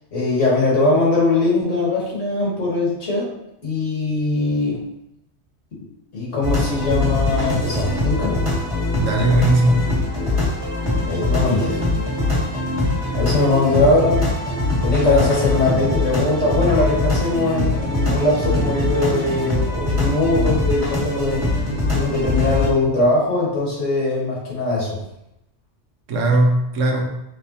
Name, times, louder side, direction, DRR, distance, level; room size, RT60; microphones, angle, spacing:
voice 1, 0.1-3.3 3.6-4.8 6.1-8.4 11.0-11.7 13.1-14.2 14.8-21.6 21.9-25.0, left 2 dB, 85° left, -5 dB, 1.9 m, -20 dB
sound 1, 6.4-22.7, left 2 dB, 25° right, 1.6 m, -22 dB
voice 2, 9.0-9.9 26.1-27.0, right 1 dB, 90° right, 1 dB, 1.2 m, -17 dB
5.2 x 3.6 x 2.8 m, 0.85 s
omnidirectional pair, 1.2 m